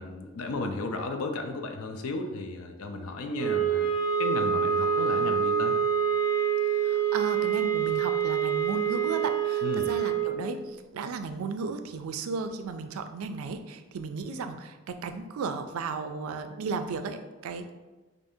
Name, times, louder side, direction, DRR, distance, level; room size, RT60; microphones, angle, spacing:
voice 1, 0.0-3.9 4.2-5.7 9.6-9.9, left 2 dB, 90° left, 5 dB, 0.5 m, -34 dB
sound 1, 3.4-10.3, right 7 dB, 5° left, 0.8 m, -26 dB
voice 2, 6.6-17.7, right 4 dB, 80° right, 8 dB, 0.3 m, -35 dB
4.9 x 2.6 x 2.6 m, 1.2 s
head